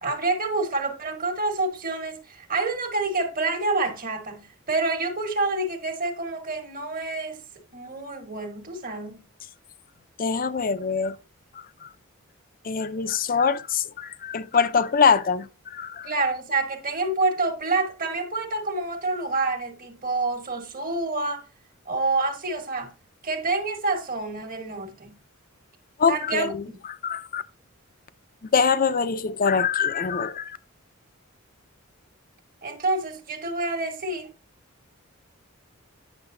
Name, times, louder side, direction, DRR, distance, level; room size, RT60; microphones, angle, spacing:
voice 1, 0.0-7.4 7.7-9.3 16.0-21.4 21.8-22.9 23.2-25.2 26.1-26.8 32.6-34.3, right 3 dB, 45° right, 1.4 m, -28 dB
voice 2, 10.2-11.1 11.8-11.9 12.7-15.5 15.7-16.1 26.0-26.6 27.0-27.4 28.5-30.6, left 6 dB, 45° left, 0.5 m, -23 dB
8.9 x 6.5 x 2.6 m
head